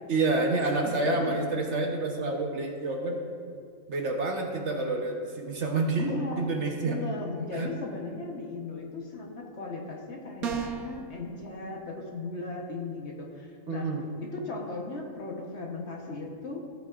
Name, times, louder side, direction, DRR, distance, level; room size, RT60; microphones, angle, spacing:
voice 1, 0.1-3.2 3.9-6.1 6.4-7.0 7.5-7.7 13.7-14.1, right 3 dB, 55° right, 2 dB, 1.2 m, -28 dB
voice 2, 1.0-1.4 5.9-13.9 14.2-16.7, left 3 dB, 55° left, 0 dB, 1.3 m, -37 dB
sound 1, 10.4-11.0, right 7 dB, 85° right, 1.2 m, -31 dB
15.5 x 7.8 x 2.4 m, 2.1 s
omnidirectional pair, 1.5 m